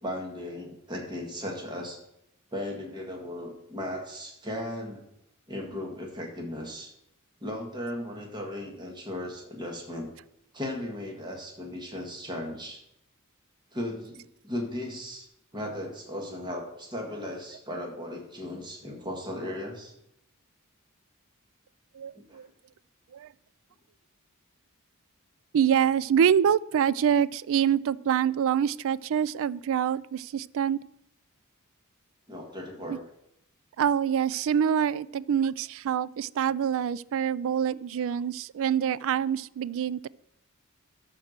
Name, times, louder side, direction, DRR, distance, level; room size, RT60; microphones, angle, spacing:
voice 1, 0.0-2.0 2.5-5.0 5.5-6.9 7.4-10.1 10.5-12.8 13.7-15.3 15.5-19.9 22.1-22.4 32.3-33.0, left 1 dB, 20° right, 1 dB, 1.8 m, -36 dB
voice 2, 21.9-22.5 23.1-23.3 25.5-30.8 32.9-33.0 33.8-40.1, right 8 dB, 65° right, 20 dB, 0.3 m, -26 dB
13.0 x 4.6 x 6.6 m, 0.80 s
head